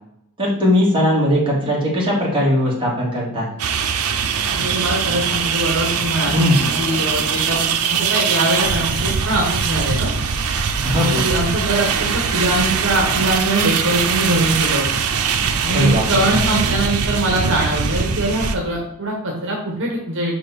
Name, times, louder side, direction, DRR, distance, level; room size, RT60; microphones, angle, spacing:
voice 1, 0.4-3.5 6.3-6.7 10.8-11.2 15.7-16.4, left 1 dB, 25° right, -5 dB, 2.4 m, -19 dB
sound 1, 3.6-18.6, right 6 dB, 90° right, 0.7 m, -21 dB
voice 2, 4.5-6.3 6.8-10.1 11.1-14.9 15.6-20.4, right 1 dB, 60° right, -1 dB, 1.6 m, -22 dB
5.9 x 4.9 x 4.3 m, 0.78 s
head